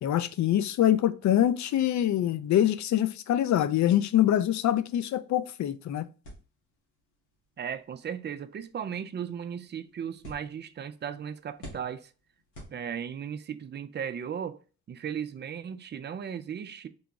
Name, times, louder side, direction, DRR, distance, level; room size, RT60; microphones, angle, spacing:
voice 1, 0.0-6.1, left 11 dB, 45° left, 0.5 m, -24 dB
sound 1, 6.2-13.4, equal, 90° left, 1.6 m, -52 dB
voice 2, 7.6-12.1 12.7-14.6 14.9-16.9, right 8 dB, 25° right, 0.4 m, -36 dB
3.8 x 2.2 x 3.8 m
hypercardioid pair, 45°, 42 cm